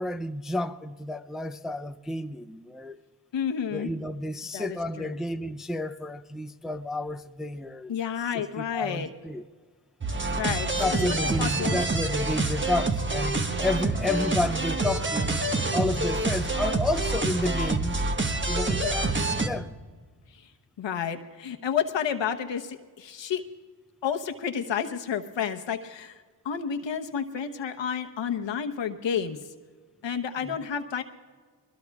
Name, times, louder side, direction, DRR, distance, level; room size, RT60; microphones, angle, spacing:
voice 1, 0.0-3.0 3.7-7.9 8.6-9.4 10.7-15.3 15.7-18.0 18.5-19.8 30.4-30.6, left 1 dB, ahead, 0.4 m, -31 dB
voice 2, 3.3-3.9 4.5-5.2 7.9-9.1 10.4-11.0 11.4-11.8 20.3-20.4 20.8-23.4 24.0-29.4 30.0-31.0, left 7 dB, 75° left, 1.1 m, -30 dB
sound 1, 10.0-19.5, right 2 dB, 25° right, 1.3 m, -27 dB
23.5 x 21.5 x 2.4 m
cardioid pair, 65°, 44 cm